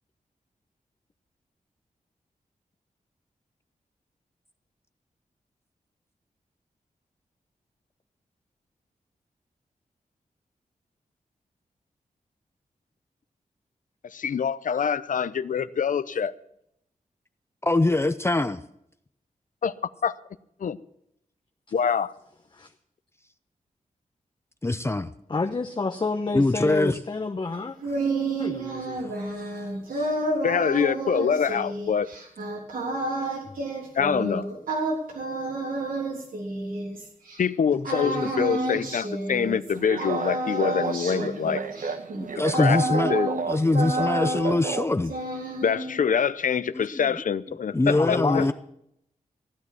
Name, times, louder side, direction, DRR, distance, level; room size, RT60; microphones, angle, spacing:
voice 1, 14.1-16.3 19.6-19.7 20.0-20.1 20.6-20.8 21.7-22.1 30.4-32.1 33.9-34.5 37.4-41.6 42.6-42.8 43.1-43.3 45.6-48.4, left 7 dB, 70° left, 0.7 m, -25 dB
voice 2, 17.6-18.6 24.6-25.1 26.3-27.0 29.0-29.2 29.9-30.1 42.1-43.1 43.5-45.2 46.7-47.2 47.7-48.5, left 2 dB, 20° left, 0.6 m, -23 dB
voice 3, 25.3-27.8 28.4-29.1 37.7-38.3 38.6-38.9 47.9-48.5, left 3 dB, 35° left, 1.0 m, -30 dB
sound 1, 27.5-37.4 37.8-39.7 40.0-43.5 43.7-44.8 45.0-46.0, right 2 dB, 90° right, 3.5 m, -30 dB
sound 2, 39.7-44.9, right 5 dB, 70° right, 1.2 m, -32 dB
15.5 x 9.6 x 6.0 m
wide cardioid pair, 90°, 14 cm